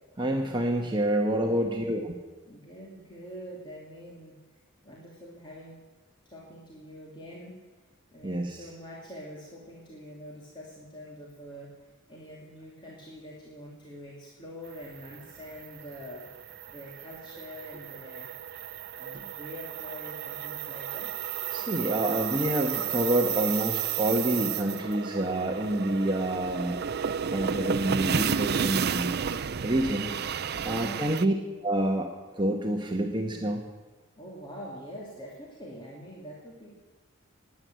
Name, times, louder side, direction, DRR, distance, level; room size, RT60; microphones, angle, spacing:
voice 1, 0.2-2.1 8.2-8.6 21.5-26.8 27.3-29.2 29.6-30.1 30.6-31.3 31.6-32.1 32.4-33.7, right 1 dB, 20° right, 1 dB, 1.1 m, -27 dB
voice 2, 1.2-2.0 2.5-4.4 4.8-5.8 6.3-7.6 8.1-11.8 12.1-16.3 16.7-18.3 19.0-21.1 30.6-31.2 34.2-36.7, equal, 20° left, -4 dB, 2.5 m, -45 dB
sound 1, 14.8-31.3, right 8 dB, 50° right, 0.5 m, -32 dB
19.5 x 9.6 x 7.6 m, 1.3 s
head